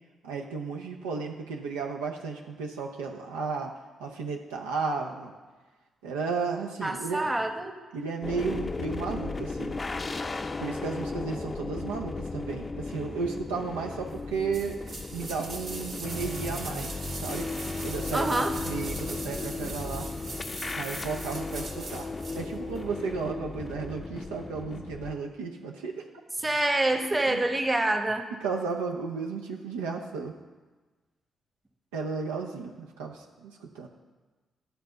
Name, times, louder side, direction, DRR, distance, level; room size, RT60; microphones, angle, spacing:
voice 1, 0.2-3.7 4.0-5.3 6.0-7.3 7.9-9.7 10.6-14.8 15.1-20.1 20.7-26.1 27.2-27.4 28.4-30.3 31.9-33.9, right 5 dB, 85° right, 0 dB, 0.6 m, -34 dB
voice 2, 6.8-7.7 18.1-18.5 26.4-28.3, right 2 dB, 20° right, 5 dB, 1.1 m, -26 dB
sound 1, 8.2-25.1, left 3 dB, 35° left, 0.5 m, -35 dB
sound 2, 14.5-22.4 22.7-22.8, right 3 dB, 65° right, 1.5 m, -41 dB
11.5 x 4.0 x 6.8 m, 1.3 s
hypercardioid pair, 40°, 0 cm